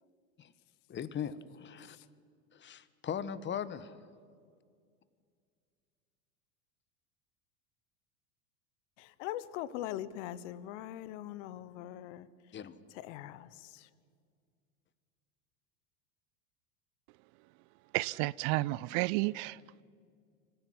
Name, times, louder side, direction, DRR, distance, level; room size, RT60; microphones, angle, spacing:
voice 1, 0.9-2.0 2.5-4.0 12.5-12.8, left 8 dB, 25° left, 15 dB, 1.3 m, -39 dB
voice 2, 9.0-12.3 12.9-13.9, left 13 dB, 60° left, 17 dB, 1.2 m, -41 dB
voice 3, 17.9-19.6, right 21 dB, 45° right, 22 dB, 0.5 m, -31 dB
25.5 x 15.0 x 9.5 m, 2.2 s
hypercardioid pair, 90°, 41 cm